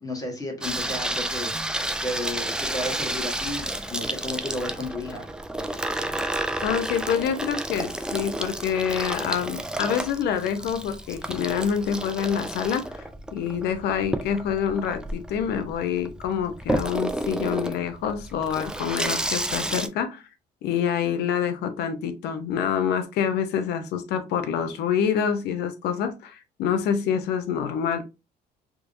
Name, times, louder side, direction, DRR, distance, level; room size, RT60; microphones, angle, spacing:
voice 1, 0.0-5.3, left 1 dB, 20° left, 1.5 m, -33 dB
Water tap faucet / Sink (filling or washing), 0.6-19.9, right 1 dB, 5° right, 0.4 m, -31 dB
voice 2, 6.6-13.0 13.3-20.2 20.6-28.0, left 8 dB, 80° left, 0.7 m, -26 dB
3.6 x 3.1 x 2.6 m
cardioid pair, 110°, 17 cm